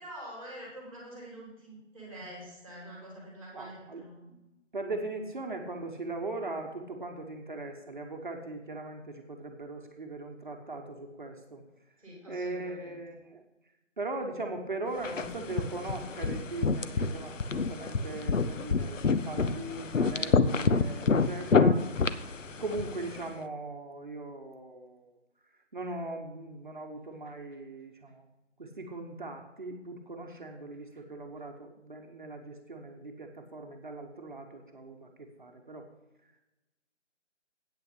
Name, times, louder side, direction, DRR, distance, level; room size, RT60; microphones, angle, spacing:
voice 1, 0.0-4.4 12.0-13.0, right 1 dB, 5° left, -5 dB, 2.7 m, -46 dB
voice 2, 3.5-4.0 4.7-11.6 12.3-13.4 14.0-21.8 22.6-25.1 25.7-28.2 28.6-35.8, right 2 dB, 40° right, 3 dB, 1.0 m, -39 dB
sound 1, 15.0-23.2, left 4 dB, 85° left, 0.8 m, -28 dB
8.6 x 5.7 x 8.0 m, 0.98 s
figure-of-eight pair, 165°, 37 cm